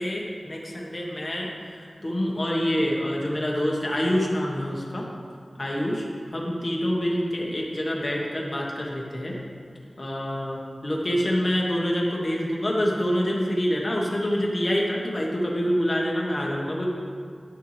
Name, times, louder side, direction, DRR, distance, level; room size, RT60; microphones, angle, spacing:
voice 1, 0.0-1.5 1.8-5.0 5.6-6.1 6.3-9.3 10.0-16.9, equal, 35° left, -3 dB, 1.2 m, -26 dB
9.5 x 6.7 x 3.2 m, 2.2 s
wide cardioid pair, 80°, 0 cm